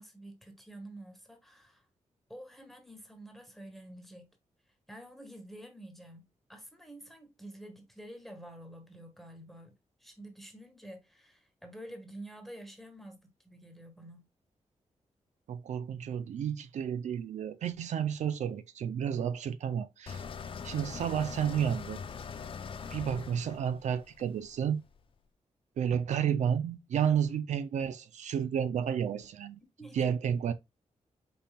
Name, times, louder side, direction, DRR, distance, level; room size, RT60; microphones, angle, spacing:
voice 1, 0.0-1.9 2.3-4.3 4.9-14.3 29.8-30.1, right 1 dB, ahead, 1.3 m, -49 dB
voice 2, 15.5-20.2 20.6-22.0 22.9-24.8 25.8-29.6 30.0-30.5, right 8 dB, 85° right, 0.5 m, -31 dB
sound 1, 20.1-25.0, left 6 dB, 50° left, 0.5 m, -42 dB
5.4 x 4.2 x 2.2 m
wide cardioid pair, 120°, 12 cm